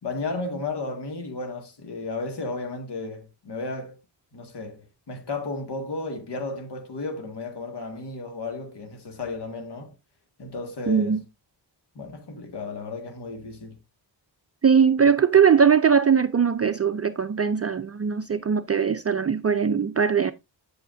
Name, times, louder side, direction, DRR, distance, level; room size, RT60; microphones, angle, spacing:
voice 1, 0.0-4.0 4.3-9.9 10.4-11.2 12.0-13.8, left 3 dB, 65° left, 1.8 m, -33 dB
voice 2, 10.9-11.2 14.6-20.3, right 7 dB, 35° right, 0.5 m, -20 dB
9.3 x 7.9 x 2.6 m
wide cardioid pair, 140°, 44 cm